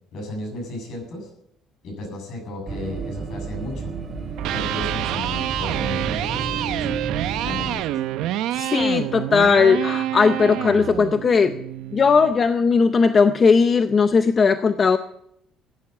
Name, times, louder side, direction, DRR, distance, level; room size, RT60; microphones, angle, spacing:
voice 1, 0.1-1.3 1.8-3.9 4.5-7.0 7.4-7.9, left 2 dB, 55° left, 2 dB, 7.3 m, -34 dB
sound 1, 2.7-7.7, right 5 dB, 25° right, 2.1 m, -31 dB
Electric guitar, 4.3-12.4, right 13 dB, 85° right, 0.7 m, -28 dB
voice 2, 8.5-11.6 11.9-15.0, left 5 dB, 25° left, 9 dB, 0.6 m, -18 dB
16.0 x 9.8 x 6.6 m, 0.74 s
cardioid pair, 170°, 0 cm